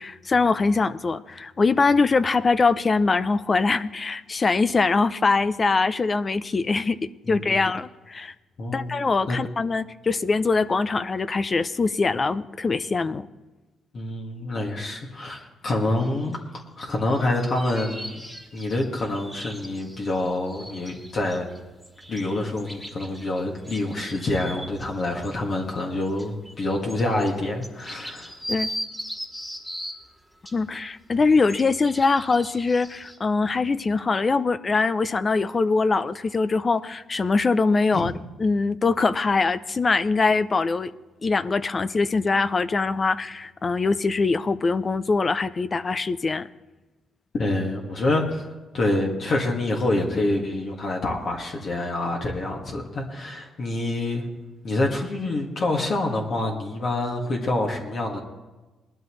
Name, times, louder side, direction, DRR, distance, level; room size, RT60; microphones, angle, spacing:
voice 1, 0.0-7.0 7.3-8.3 8.7-13.3 28.5-28.7 30.5-38.1 38.4-40.9 41.2-46.5, left 4 dB, 35° left, 14 dB, 0.5 m, -23 dB
voice 2, 7.3-7.6 8.6-8.9 9.3-9.4 13.9-16.4 16.8-18.2 18.5-21.5 22.1-28.3 37.9-38.1 47.4-48.5 48.7-54.3 54.6-58.2, left 2 dB, 50° left, 0 dB, 1.9 m, -26 dB
sound 1, 16.3-16.4 16.9-24.9 25.2-25.4 25.8-30.0 30.5-33.2, equal, 5° left, 2.0 m, -39 dB
19.5 x 12.0 x 3.2 m, 1.2 s
cardioid pair, 90°, 0 cm